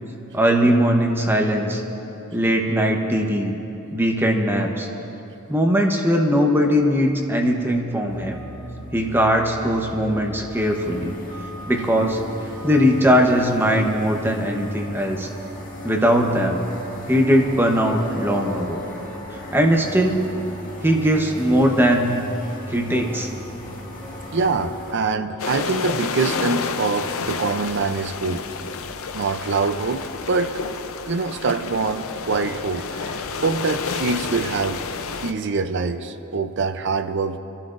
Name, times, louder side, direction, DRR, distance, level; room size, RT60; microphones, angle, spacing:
voice 1, 0.3-1.8 2.3-3.5 3.9-4.9 5.5-8.4 8.9-11.1 11.7-12.2 12.6-15.3 15.8-16.6 17.1-18.8 19.5-20.2 20.8-22.2 22.7-23.3, equal, 10° right, 2 dB, 0.9 m, -20 dB
sound 1, 8.1-24.9, equal, 40° left, 1.8 m, -37 dB
voice 2, 24.3-28.5 29.1-30.6 31.1-34.8 35.2-37.4, right 4 dB, 55° right, 10 dB, 0.5 m, -24 dB
sound 2, 25.4-35.3, left 5 dB, 75° left, 0.6 m, -30 dB
28.0 x 11.5 x 2.5 m, 3.0 s
head